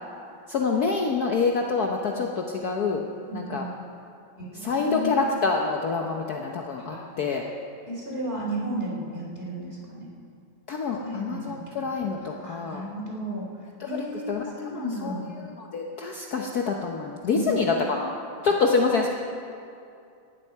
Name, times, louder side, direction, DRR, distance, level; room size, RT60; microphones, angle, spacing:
voice 1, 0.5-3.1 3.3-3.7 4.5-7.4 10.7-12.8 13.8-13.9 14.3-18.1 18.4-19.1, left 4 dB, 55° left, 1 dB, 1.2 m, -26 dB
voice 2, 3.2-3.8 4.4-5.1 6.8-7.1 7.9-10.1 10.9-11.8 12.3-13.5 13.8-15.3 17.3-18.1 18.4-18.5, right 1 dB, 25° right, -3 dB, 3.4 m, -34 dB
18.0 x 13.0 x 4.7 m, 2.5 s
omnidirectional pair, 2.3 m